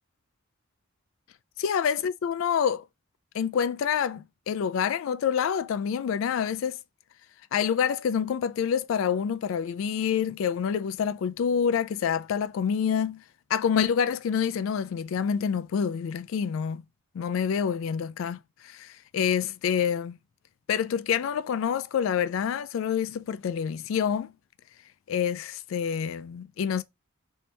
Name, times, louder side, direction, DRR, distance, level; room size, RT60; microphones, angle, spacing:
voice 1, 1.6-2.8 3.3-6.8 7.5-13.2 13.5-16.8 17.1-20.2 20.7-24.3 25.1-26.8, left 7 dB, 70° left, 0.3 m, -27 dB
3.3 x 2.7 x 2.7 m
head